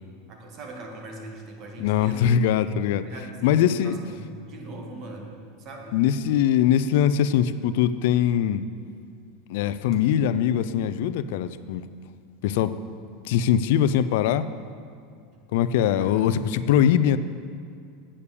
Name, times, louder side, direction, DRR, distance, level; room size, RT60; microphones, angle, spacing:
voice 1, 0.3-2.3 3.0-6.0 15.3-15.4 15.9-16.2, right 1 dB, 40° right, 2 dB, 1.6 m, -41 dB
voice 2, 1.8-3.1 3.4-4.0 5.9-8.7 9.5-11.9 12.4-12.8 13.2-14.5 15.5-17.2, left 9 dB, 65° left, 13 dB, 0.4 m, -22 dB
8.6 x 6.8 x 6.9 m, 2.3 s
supercardioid pair, 150°, 0 cm